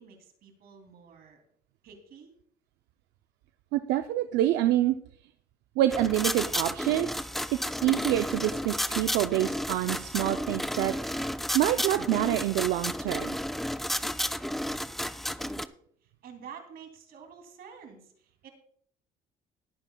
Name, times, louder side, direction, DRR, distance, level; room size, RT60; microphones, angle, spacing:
voice 1, 0.0-1.4 1.8-2.3 15.4-15.7 16.0-18.5, right 7 dB, 65° right, 4 dB, 2.8 m, -49 dB
voice 2, 3.7-5.0 5.8-7.1 7.8-13.4, right 13 dB, 85° right, 9 dB, 0.5 m, -27 dB
sound 1, 5.9-15.7, equal, ahead, 0.3 m, -32 dB
20.5 x 9.0 x 2.3 m, 0.62 s
cardioid pair, 110°, 17 cm